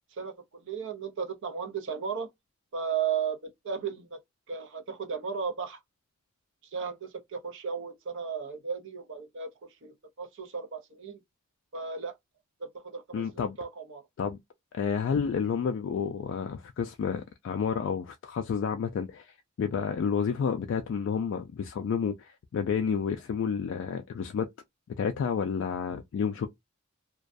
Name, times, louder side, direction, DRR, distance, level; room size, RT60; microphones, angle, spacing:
voice 1, 0.2-2.3 2.7-4.2 4.5-5.8 6.7-9.5 9.8-11.2 11.7-12.1 12.6-14.0, right 6 dB, 60° right, 0.6 m, -35 dB
voice 2, 13.1-13.6 14.2-14.4 14.7-24.5 25.0-26.5, left 6 dB, 60° left, 0.3 m, -30 dB
2.3 x 2.2 x 2.5 m
head